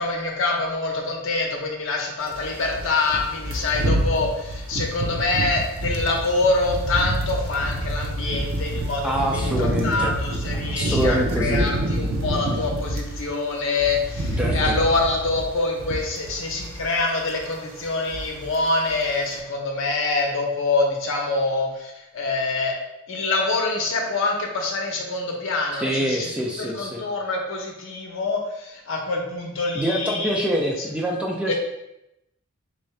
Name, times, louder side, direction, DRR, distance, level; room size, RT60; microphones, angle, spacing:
voice 1, 0.0-9.5 9.8-22.8 23.1-26.3 26.6-30.5 30.8-30.9 31.5-31.6, left 3 dB, 65° left, 1 dB, 0.7 m, -25 dB
sound 1, 2.3-13.2 13.6-17.0 17.2-17.5 17.8-18.6 18.9-19.1, right 1 dB, 80° right, 0.5 m, -27 dB
voice 2, 9.0-10.1 10.5-11.7 14.4-14.8 25.7-27.0 29.7-31.5, right 1 dB, 5° right, -2 dB, 0.4 m, -25 dB
3.6 x 2.6 x 3.1 m, 0.87 s
head